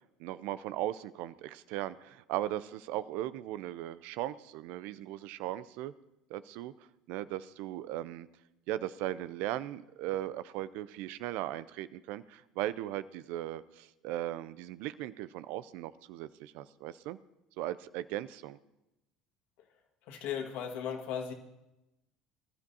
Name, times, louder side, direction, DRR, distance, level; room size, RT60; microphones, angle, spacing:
voice 1, 0.2-5.9 6.3-6.7 7.1-8.3 8.7-17.2 17.6-18.6, right 14 dB, 65° right, 15 dB, 0.5 m, -38 dB
voice 2, 20.1-21.3, left 8 dB, 65° left, 2 dB, 1.9 m, -36 dB
24.5 x 12.5 x 2.8 m, 0.96 s
hypercardioid pair, 65°, 3 cm